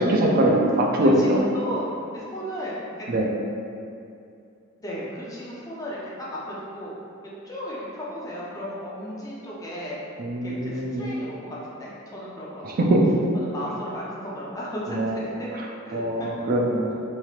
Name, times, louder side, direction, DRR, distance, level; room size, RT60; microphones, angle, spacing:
voice 1, 0.0-1.5 3.1-3.3 10.2-11.1 12.6-13.2 14.9-15.2 15.9-16.9, right 1 dB, 45° right, -1 dB, 0.4 m, -22 dB
voice 2, 1.0-1.9 2.1-3.1 4.8-6.0 6.3-7.0 7.2-10.0 10.4-12.8 13.3-15.5 15.9-16.3, equal, 15° left, -6 dB, 0.5 m, -35 dB
3.0 x 2.9 x 2.4 m, 2.5 s
head